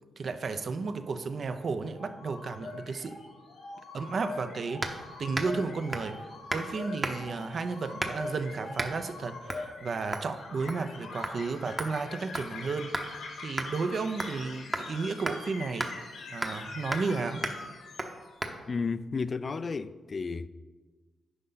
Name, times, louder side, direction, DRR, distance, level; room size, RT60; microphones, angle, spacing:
voice 1, 0.2-3.2 3.9-6.2 6.5-13.0 13.4-15.9 16.3-17.5, right 4 dB, 60° right, 0.6 m, -33 dB
sound 1, 1.9-18.5, left 3 dB, 90° left, 1.3 m, -43 dB
sound 2, 4.8-5.0 5.3-5.6 5.9-6.2 6.5-6.7 7.0-7.4 8.0-8.3 8.8-9.0 9.5-9.7 10.1-10.3 10.7-11.0 11.2-11.4 11.8-13.1 13.6-13.7 14.2-14.4 14.7-14.9 15.3-15.4 15.8-15.9 16.4-16.6 16.9-17.1 17.4-17.6 18.0-18.1 18.4-18.5, right 2 dB, 25° right, 0.9 m, -34 dB
voice 2, 18.7-20.5, left 4 dB, 50° left, 0.3 m, -32 dB
9.6 x 5.3 x 4.0 m
cardioid pair, 65°, 0 cm